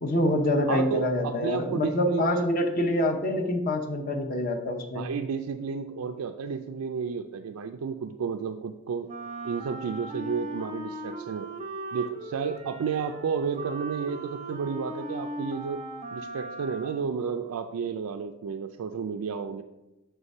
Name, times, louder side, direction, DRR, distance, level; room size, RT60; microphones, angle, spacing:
voice 1, 0.0-5.1, left 1 dB, 40° left, 3 dB, 0.7 m, -26 dB
voice 2, 0.7-2.4 4.9-9.1 9.4-11.5 11.9-15.8 16.1-19.6, right 6 dB, 85° right, 6 dB, 0.4 m, -32 dB
Wind instrument woodwind instrument, 9.1-17.2, right 1 dB, 30° right, 0.5 m, -38 dB
7.3 x 3.4 x 5.3 m, 0.99 s
head